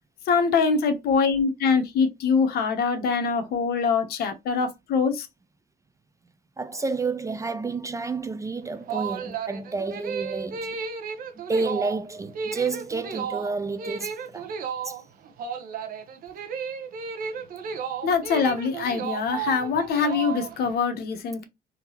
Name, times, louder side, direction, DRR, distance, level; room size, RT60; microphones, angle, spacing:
voice 1, 0.3-5.3 18.0-21.4, left 5 dB, 70° left, 1.0 m, -24 dB
voice 2, 6.6-10.8 11.3-14.5 14.8-15.0, right 4 dB, 20° right, 0.3 m, -30 dB
sound 1, 8.6-20.8, right 6 dB, 55° right, 0.8 m, -33 dB
3.7 x 2.7 x 2.8 m
cardioid pair, 110°, 17 cm